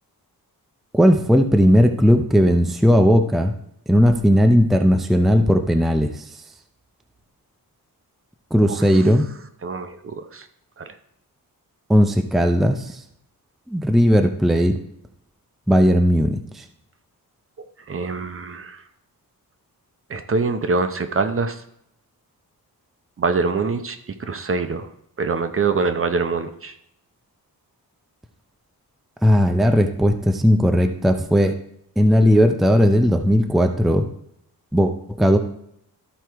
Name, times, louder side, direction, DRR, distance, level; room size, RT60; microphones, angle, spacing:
voice 1, 0.9-3.5 3.9-6.2 8.5-9.2 11.9-13.0 13.7-14.8 15.7-16.6 29.2-31.5 32.0-34.1 34.7-35.4, equal, ahead, 6 dB, 0.5 m, -17 dB
voice 2, 9.6-10.4 17.9-18.8 20.1-21.6 23.2-24.0 24.3-24.9 25.2-26.7, right 4 dB, 35° right, 9 dB, 0.7 m, -24 dB
13.0 x 4.7 x 4.6 m, 0.73 s
wide cardioid pair, 145°, 36 cm